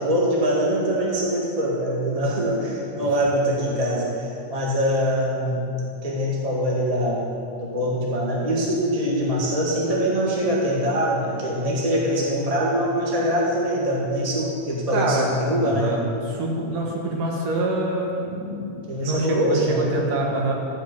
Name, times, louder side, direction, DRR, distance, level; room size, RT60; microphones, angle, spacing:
voice 1, 0.0-5.6 6.0-7.2 7.6-15.9 18.9-19.9, equal, 15° right, -4 dB, 1.6 m, -23 dB
voice 2, 14.9-15.3 15.6-20.5, right 2 dB, 85° right, -1 dB, 3.1 m, -26 dB
13.5 x 5.2 x 8.3 m, 2.5 s
omnidirectional pair, 3.6 m